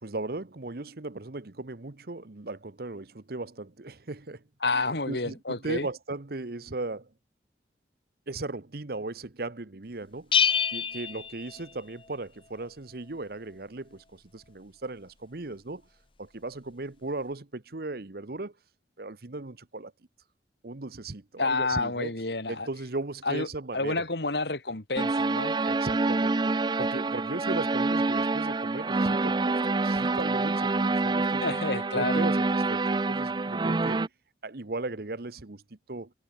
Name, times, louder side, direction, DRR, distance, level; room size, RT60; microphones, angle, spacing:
voice 1, 0.0-4.4 4.7-7.1 8.3-15.8 16.2-18.5 19.0-19.9 20.6-22.1 22.5-24.1 25.6-26.4 26.8-31.4 31.9-34.1 34.4-35.6 35.9-36.1, right 2 dB, 55° right, 1.1 m, -37 dB
voice 2, 4.6-5.9 21.4-22.7 23.2-23.5 23.7-25.5 31.4-32.3, left 3 dB, 65° left, 2.6 m, -29 dB
Bell, 10.3-12.1, left 7 dB, 30° left, 0.9 m, -27 dB
sound 1, 25.0-34.1, right 3 dB, 25° right, 0.5 m, -27 dB
head